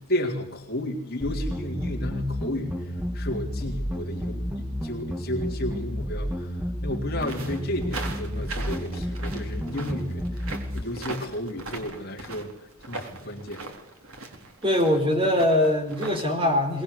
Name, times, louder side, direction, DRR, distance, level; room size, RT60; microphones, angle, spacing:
voice 1, 0.0-13.6, left 1 dB, 45° left, 0 dB, 3.6 m, -33 dB
sound 1, 1.2-10.8, equal, 5° right, 2.0 m, -31 dB
sound 2, 7.2-16.2, right 2 dB, 70° right, 3.8 m, -39 dB
voice 2, 14.6-16.8, left 1 dB, 25° right, 4 dB, 4.6 m, -22 dB
23.0 x 19.5 x 8.3 m, 0.77 s
head